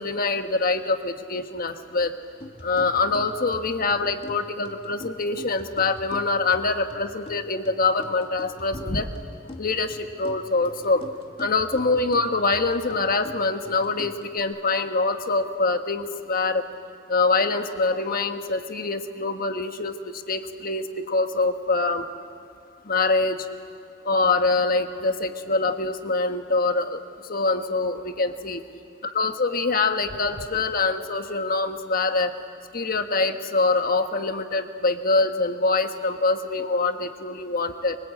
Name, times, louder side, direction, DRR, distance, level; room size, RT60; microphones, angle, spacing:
voice 1, 0.0-2.1 2.6-9.1 9.6-11.0 11.4-16.7 17.1-22.0 22.8-23.5 24.0-27.0 27.3-28.6 29.0-32.3 32.7-38.0, left 3 dB, 50° left, 7 dB, 1.4 m, -24 dB
sound 1, 2.4-14.4, left 1 dB, 30° left, 1.5 m, -44 dB
25.0 x 24.5 x 8.5 m, 2.3 s
head